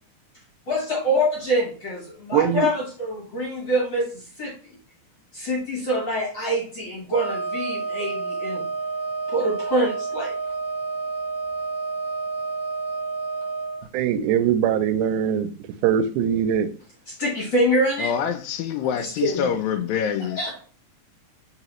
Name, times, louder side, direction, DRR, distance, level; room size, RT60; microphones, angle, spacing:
voice 1, 0.7-4.5 5.3-8.6 9.3-10.3 17.1-18.1 19.0-19.5 20.4-20.6, equal, 50° left, 1.5 m, -25 dB
voice 2, 2.3-2.7 13.9-15.5 15.8-16.7, right 9 dB, 85° right, 2.0 m, -21 dB
Wind instrument woodwind instrument, 7.1-13.8, right 4 dB, 70° right, 1.6 m, -29 dB
voice 3, 18.0-20.4, left 8 dB, 80° left, 1.8 m, -26 dB
4.0 x 3.9 x 2.9 m
omnidirectional pair, 3.6 m